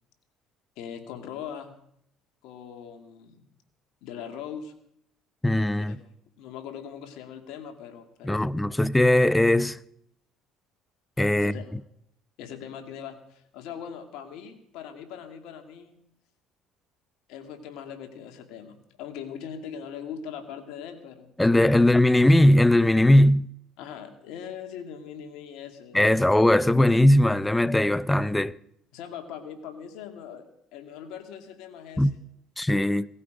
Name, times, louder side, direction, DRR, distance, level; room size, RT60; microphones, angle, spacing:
voice 1, 0.8-1.7 2.4-3.4 4.0-4.7 5.9-8.5 11.3-11.7 12.4-16.0 17.3-21.3 21.8-22.0 23.8-26.2 28.9-32.2, left 8 dB, 75° left, 2.2 m, -41 dB
voice 2, 5.4-6.0 8.2-9.8 11.2-11.5 21.4-23.5 25.9-28.6 32.0-32.1 32.6-33.1, left 1 dB, 10° left, 0.6 m, -19 dB
18.5 x 14.0 x 5.1 m
supercardioid pair, 85°, 0 cm